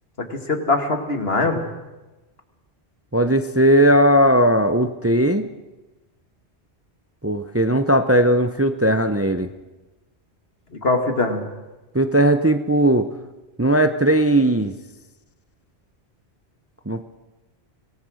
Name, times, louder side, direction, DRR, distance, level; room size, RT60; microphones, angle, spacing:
voice 1, 0.2-1.7 10.7-11.4, left 3 dB, 65° left, 6 dB, 2.5 m, -22 dB
voice 2, 3.1-5.5 7.2-9.5 11.9-13.1 13.6-14.7 16.9-17.0, right 1 dB, 15° right, 9 dB, 0.7 m, -17 dB
25.0 x 18.5 x 6.5 m, 1.1 s
omnidirectional pair, 1.1 m